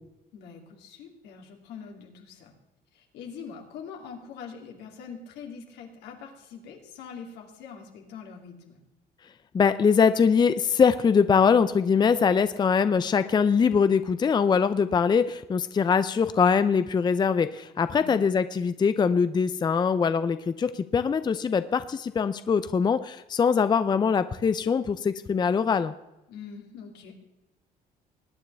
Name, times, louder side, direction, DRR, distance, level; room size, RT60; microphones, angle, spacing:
voice 1, 0.3-2.5 2.9-8.8 17.9-18.2 26.3-27.1, left 6 dB, 85° left, 2 dB, 2.8 m, -43 dB
voice 2, 9.5-25.9, left 6 dB, 25° left, 12 dB, 0.5 m, -23 dB
20.5 x 9.3 x 3.4 m, 0.98 s
cardioid pair, 110°, 17 cm